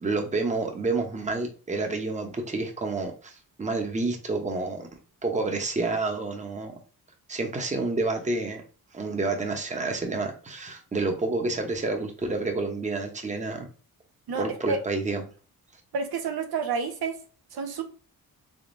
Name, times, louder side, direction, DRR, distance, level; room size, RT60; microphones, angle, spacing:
voice 1, 0.0-4.9 5.2-6.7 7.3-8.6 8.9-13.7 14.3-15.2, right 3 dB, 20° right, 3 dB, 0.8 m, -29 dB
voice 2, 14.3-14.8 15.9-17.1 17.5-17.8, right 5 dB, 90° right, 5 dB, 0.9 m, -29 dB
3.7 x 3.6 x 2.6 m, 0.37 s
wide cardioid pair, 115°, 36 cm